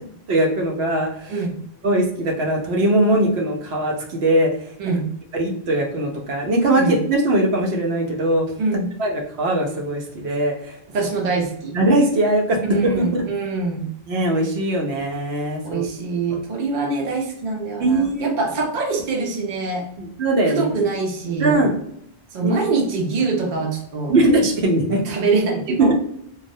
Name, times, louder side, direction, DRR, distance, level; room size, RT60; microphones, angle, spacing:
voice 1, 0.3-1.4 1.8-4.5 5.3-8.4 9.0-10.8 11.7-13.3 14.1-15.9 17.8-18.3 20.0-20.7 21.4-21.8 22.4-22.6 24.1-25.0 25.8-25.9, right 1 dB, 85° right, 0 dB, 0.9 m, -20 dB
voice 2, 8.6-9.0 10.9-11.7 12.7-13.9 15.6-19.9 20.5-21.5 22.3-24.1 24.9-25.9, right 4 dB, 60° right, 1 dB, 0.7 m, -24 dB
2.3 x 2.0 x 2.6 m, 0.72 s
omnidirectional pair, 1.0 m